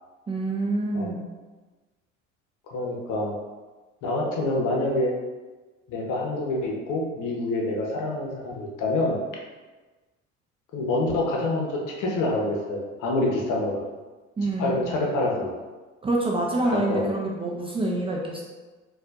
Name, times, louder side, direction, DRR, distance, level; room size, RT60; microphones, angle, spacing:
voice 1, 0.3-1.3 14.4-14.9 16.0-18.4, right 2 dB, 15° right, -3 dB, 0.4 m, -26 dB
voice 2, 2.7-3.3 4.0-5.1 5.9-9.2 10.7-13.8 14.6-15.5 16.6-17.1, left 2 dB, 50° left, -1 dB, 0.9 m, -26 dB
4.1 x 2.4 x 2.5 m, 1.3 s
hypercardioid pair, 65°, 38 cm